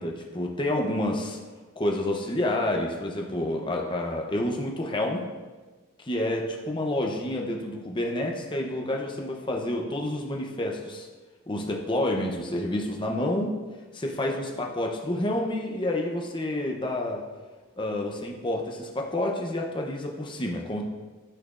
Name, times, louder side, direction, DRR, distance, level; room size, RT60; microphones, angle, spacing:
voice 1, 0.0-1.4 1.8-5.2 6.0-11.1 11.5-13.5 13.9-17.2 17.8-20.8, left 1 dB, 20° left, 1 dB, 0.7 m, -29 dB
12.5 x 4.2 x 2.5 m, 1.3 s
head